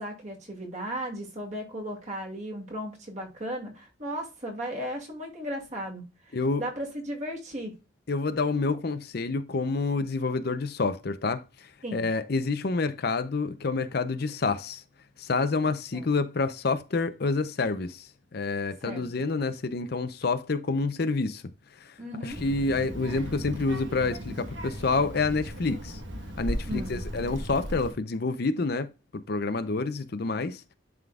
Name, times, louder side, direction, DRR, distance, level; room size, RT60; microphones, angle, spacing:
voice 1, 0.0-7.8 11.8-12.1 15.9-16.1 18.8-19.3 22.0-22.4 26.7-27.0, equal, 35° right, 2.3 m, -36 dB
voice 2, 8.1-14.8 15.2-21.4 21.8-26.0 26.4-28.9 29.3-30.6, left 3 dB, 50° left, 0.6 m, -28 dB
Child speech kid speaking, 22.3-27.9, equal, 70° right, 1.3 m, -36 dB
11.0 x 3.7 x 2.3 m
head